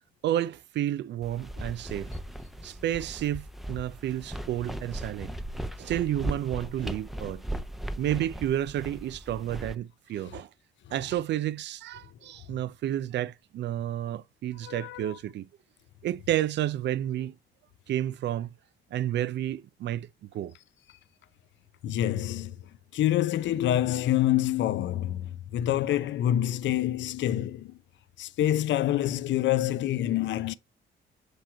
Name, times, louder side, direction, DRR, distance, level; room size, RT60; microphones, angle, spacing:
voice 1, 0.2-2.2 2.6-5.3 5.8-7.4 8.0-10.5 10.9-15.5 16.0-17.4 17.9-18.5 18.9-20.1 20.3-20.5, right 12 dB, 60° right, 0.4 m, -31 dB
sound 1, 1.2-9.7, right 1 dB, ahead, 0.6 m, -38 dB
voice 2, 14.6-15.2 21.8-22.6 22.9-27.8 28.2-30.5, left 12 dB, 70° left, 0.6 m, -27 dB
7.8 x 3.0 x 4.4 m
cardioid pair, 90°, 20 cm